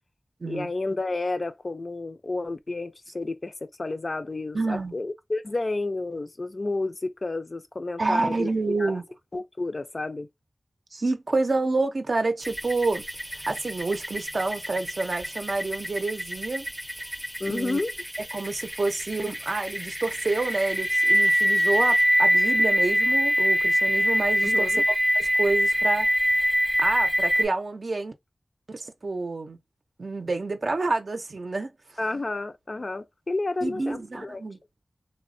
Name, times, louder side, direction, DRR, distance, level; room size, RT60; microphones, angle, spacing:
voice 1, 0.4-8.5 8.8-9.0 9.3-10.3 17.4-17.9 24.4-24.8 32.0-34.4, left 2 dB, 50° left, 0.4 m, -31 dB
voice 2, 4.5-4.9 8.0-9.0 10.9-13.0 13.5-16.7 17.5-17.8 18.3-24.7 25.1-26.1 26.8-28.1 28.7-29.6 30.0-31.7 33.6-34.6, right 3 dB, 60° right, 0.5 m, -28 dB
sound 1, 12.4-27.5, equal, 5° right, 0.5 m, -25 dB
3.2 x 2.0 x 2.5 m
wide cardioid pair, 70°, 0 cm